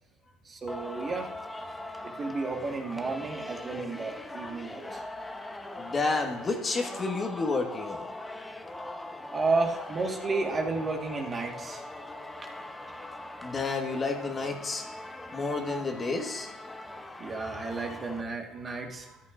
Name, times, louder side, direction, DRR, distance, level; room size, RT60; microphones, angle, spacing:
voice 1, 0.5-1.3 2.0-5.0 9.3-11.8 17.2-19.2, right 3 dB, 30° right, 2 dB, 1.6 m, -32 dB
Singing, 0.7-18.2, left 1 dB, 10° left, 0.9 m, -41 dB
voice 2, 5.8-8.1 13.4-14.8 15.3-16.5, left 3 dB, 30° left, 3 dB, 1.5 m, -30 dB
13.5 x 11.0 x 2.6 m, 0.91 s
hypercardioid pair, 85°, 0 cm